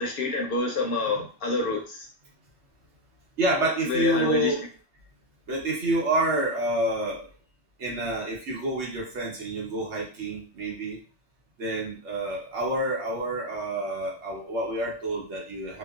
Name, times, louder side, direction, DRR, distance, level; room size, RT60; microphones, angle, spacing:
voice 1, 0.0-2.1 3.8-4.5, left 3 dB, 60° left, 1 dB, 0.7 m, -27 dB
voice 2, 3.4-4.6 5.5-7.3 7.8-11.0 11.6-15.8, right 1 dB, 80° right, -3 dB, 1.2 m, -28 dB
2.9 x 2.0 x 2.3 m, 0.38 s
omnidirectional pair, 1.2 m